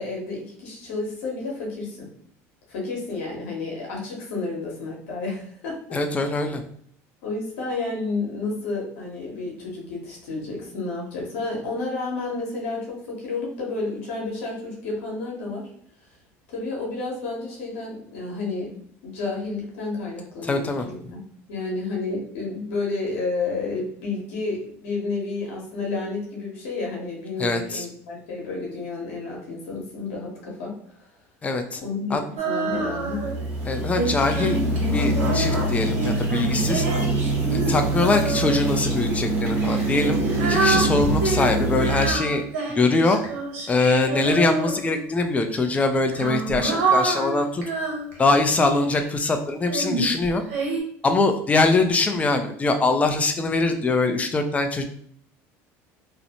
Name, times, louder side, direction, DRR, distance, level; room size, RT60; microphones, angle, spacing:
voice 1, 0.0-2.1 2.7-5.8 7.2-15.7 16.5-21.2 21.5-30.7 31.8-32.2 32.4-33.2, left 3 dB, 85° left, -2 dB, 1.0 m, -31 dB
voice 2, 5.9-6.6 20.4-20.9 27.4-27.9 31.4-31.8 32.1-32.2 33.6-34.6 34.9-36.9 37.5-42.4 42.8-43.2 43.7-47.6 48.2-50.4 51.0-54.8, left 3 dB, 20° left, 6 dB, 0.4 m, -23 dB
Female singing, 32.4-33.4 33.9-38.8 39.5-45.1 45.9-49.0 49.7-50.8, right 3 dB, 90° right, 0.7 m, -27 dB
sound 1, 32.7-42.1, right 1 dB, 25° right, 1.2 m, -24 dB
2.5 x 2.0 x 2.8 m, 0.63 s
supercardioid pair, 100°, 7 cm